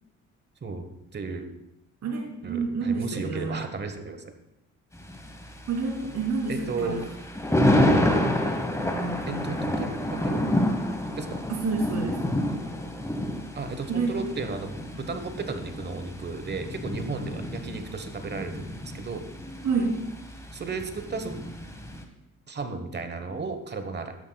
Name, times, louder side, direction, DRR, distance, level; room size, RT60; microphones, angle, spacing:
voice 1, 1.1-1.5 2.4-4.4 6.5-7.0 9.3-10.4 11.2-11.4 13.5-19.2 20.5-21.3 22.5-24.2, right 4 dB, 35° right, 8 dB, 1.1 m, -34 dB
voice 2, 2.0-3.6 5.7-6.5 6.8-7.0 8.8-9.6 11.5-12.2 13.9-14.1 19.6-20.0, right 4 dB, 65° right, -2 dB, 2.8 m, -28 dB
Thunder, 4.9-22.0, left 1 dB, 10° left, 1.1 m, -29 dB
12.0 x 9.4 x 2.3 m, 0.87 s
cardioid pair, 90°, 30 cm